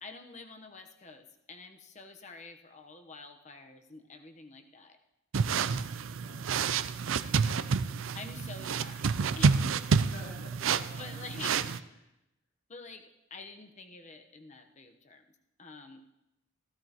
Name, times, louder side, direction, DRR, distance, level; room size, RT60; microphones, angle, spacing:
voice 1, 0.0-5.0 8.1-9.1 9.4-9.6 11.0-11.9 12.7-15.3 15.6-16.0, left 3 dB, 35° left, 5 dB, 1.0 m, -47 dB
sound 1, 5.3-11.8, right 5 dB, 70° right, 0.4 m, -29 dB
voice 2, 6.0-6.5 9.8-11.3, left 1 dB, 70° left, -4 dB, 3.0 m, -52 dB
15.5 x 15.0 x 3.0 m, 0.88 s
head